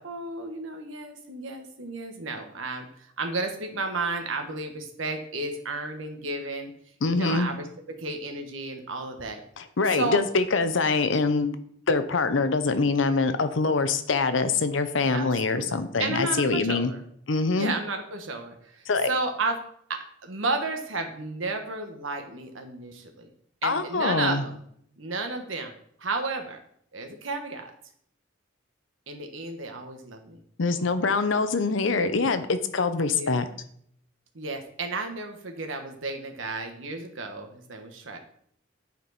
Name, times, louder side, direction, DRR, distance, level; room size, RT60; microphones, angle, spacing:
voice 1, 0.0-2.9 3.2-6.7 7.1-7.7 8.0-9.4 9.9-10.2 15.1-17.0 17.5-19.6 20.2-23.3 23.6-24.6 25.0-25.7 26.0-26.6 26.9-27.7 29.1-30.4 33.2-33.4 34.3-38.2, right 3 dB, 90° right, 5 dB, 1.2 m, -32 dB
voice 2, 7.0-7.5 9.6-11.6 11.9-16.9 17.3-17.7 18.9-19.1 23.6-24.4 30.6-33.4, left 4 dB, 75° left, 10 dB, 0.7 m, -24 dB
9.5 x 4.4 x 4.0 m, 0.66 s
head